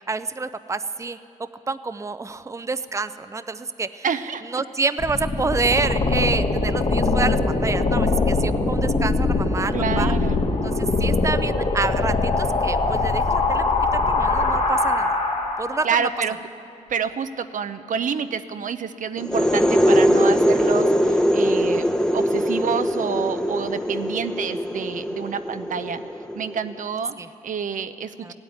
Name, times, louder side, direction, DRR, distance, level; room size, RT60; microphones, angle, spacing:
voice 1, 0.1-4.1 4.4-10.1 10.6-13.7 13.9-15.2 15.6-16.1 27.2-27.3 28.2-28.3, right 4 dB, 20° right, 12 dB, 0.6 m, -28 dB
voice 2, 4.0-4.5 9.7-10.4 15.8-16.4 16.9-26.0 26.4-27.2 27.4-28.3, right 7 dB, 65° right, 10 dB, 0.7 m, -28 dB
sound 1, 5.0-15.9, left 3 dB, 50° left, 1.8 m, -22 dB
sound 2, 19.2-26.7, equal, 5° left, 0.9 m, -21 dB
16.0 x 8.9 x 9.6 m, 2.6 s
supercardioid pair, 55°, 14 cm